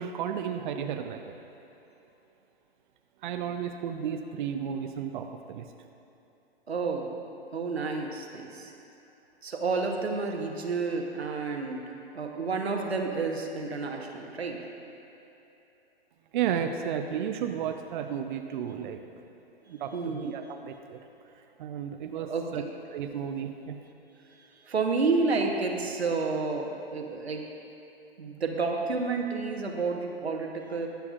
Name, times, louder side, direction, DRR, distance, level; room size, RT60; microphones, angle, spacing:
voice 1, 0.0-1.4 3.2-5.6 16.3-19.0 19.7-21.0 21.6-22.6 22.9-23.8, right 8 dB, 50° right, 5 dB, 0.6 m, -33 dB
voice 2, 6.7-7.1 7.5-8.7 9.4-11.8 12.1-14.6 19.9-20.3 22.1-22.7 24.4-27.4 28.2-30.9, right 4 dB, 90° right, 2 dB, 1.1 m, -30 dB
20.5 x 6.9 x 2.4 m, 3.0 s
hypercardioid pair, 120°, 31 cm